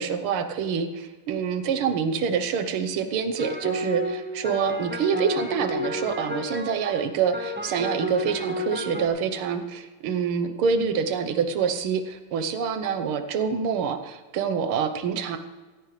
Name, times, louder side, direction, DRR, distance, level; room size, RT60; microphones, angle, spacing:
voice 1, 0.0-15.4, right 6 dB, 80° right, 9 dB, 1.8 m, -26 dB
sound 1, 3.4-9.1, left 1 dB, 10° right, 0.5 m, -31 dB
16.5 x 14.0 x 3.2 m, 1.3 s
omnidirectional pair, 2.4 m